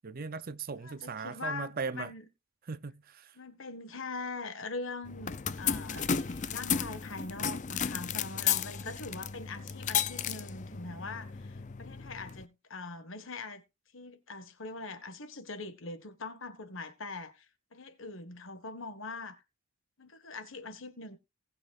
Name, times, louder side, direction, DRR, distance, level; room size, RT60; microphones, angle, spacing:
voice 1, 0.0-2.1 2.7-3.3, right 4 dB, 40° right, 0.5 m, -38 dB
voice 2, 0.8-2.2 3.4-6.1 6.5-13.6 13.9-17.4 17.7-19.4 20.0-21.2, left 3 dB, 60° left, 1.6 m, -42 dB
sound 1, 5.0-12.4, left 7 dB, 35° left, 0.5 m, -34 dB
sound 2, 5.9-10.6 10.8-11.2, right 4 dB, 80° right, 1.7 m, -61 dB
19.0 x 7.3 x 2.5 m
head